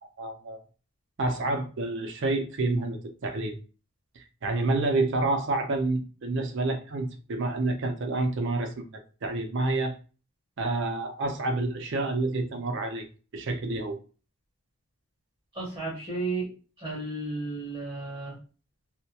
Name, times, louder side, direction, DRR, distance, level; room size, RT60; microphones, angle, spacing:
voice 1, 0.2-0.6 1.2-3.6 4.2-8.8 9.2-9.9 10.6-13.1 13.3-14.0, right 2 dB, 55° right, 5 dB, 0.5 m, -28 dB
voice 2, 15.5-16.5 16.8-18.4, right 3 dB, 20° right, -6 dB, 0.8 m, -33 dB
2.2 x 2.1 x 2.7 m, 0.37 s
head